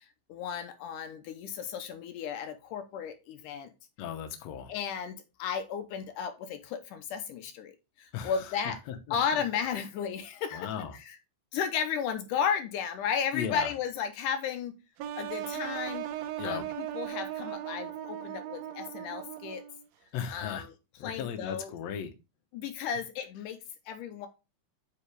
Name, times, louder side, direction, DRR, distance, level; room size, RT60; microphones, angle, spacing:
voice 1, 0.0-3.7 4.7-7.7 8.0-8.8 9.1-10.7 10.9-11.2 11.5-14.7 15.2-16.1 16.4-19.6 20.3-20.7 21.0-21.7 22.5-23.6 23.9-24.3, left 7 dB, 80° left, 2.3 m, -34 dB
voice 2, 4.0-4.7 8.1-9.2 10.5-11.0 13.3-13.7 16.4-16.7 20.1-20.7 21.0-22.1, left 8 dB, 65° left, 2.0 m, -36 dB
sound 1, 15.0-19.9, right 12 dB, 90° right, 1.4 m, -38 dB
8.5 x 4.8 x 3.4 m
omnidirectional pair, 3.8 m